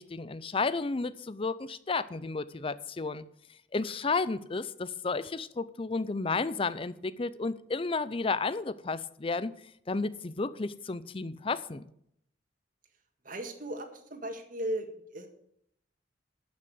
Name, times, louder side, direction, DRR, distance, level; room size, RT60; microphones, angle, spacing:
voice 1, 0.0-3.3 3.7-9.5 9.9-11.8, left 4 dB, 30° left, 0.5 m, -32 dB
voice 2, 13.2-15.3, right 1 dB, 45° right, 1.8 m, -36 dB
11.0 x 6.4 x 7.8 m
head